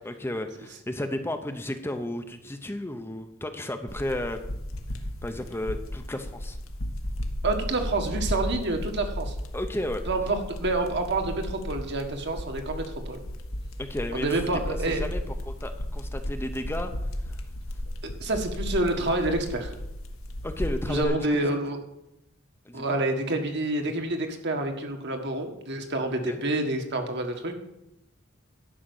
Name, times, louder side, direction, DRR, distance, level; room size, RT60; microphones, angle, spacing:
voice 1, 0.0-4.4 5.2-6.6 9.5-10.0 13.8-16.9 20.4-21.6 22.6-22.9 26.2-26.4, left 1 dB, 10° left, 6 dB, 0.7 m, -33 dB
sound 1, 3.9-21.0, equal, 75° left, 1.4 m, -34 dB
voice 2, 7.4-9.3 10.1-13.2 14.1-15.1 18.0-19.7 20.8-21.8 22.7-27.6, right 2 dB, 55° right, 4 dB, 1.6 m, -28 dB
11.5 x 5.8 x 8.1 m, 0.85 s
head